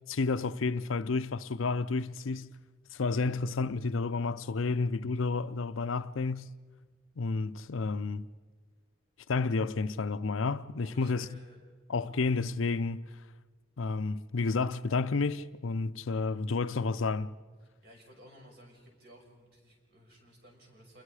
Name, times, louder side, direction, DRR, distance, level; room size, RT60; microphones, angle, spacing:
voice 1, 0.1-2.5 2.9-6.5 7.2-8.3 9.3-11.4 11.9-13.1 13.8-17.3, left 4 dB, 85° left, 0.6 m, -31 dB
voice 2, 10.8-11.6 17.8-21.0, equal, 55° right, 5.7 m, -55 dB
28.5 x 21.5 x 4.9 m
head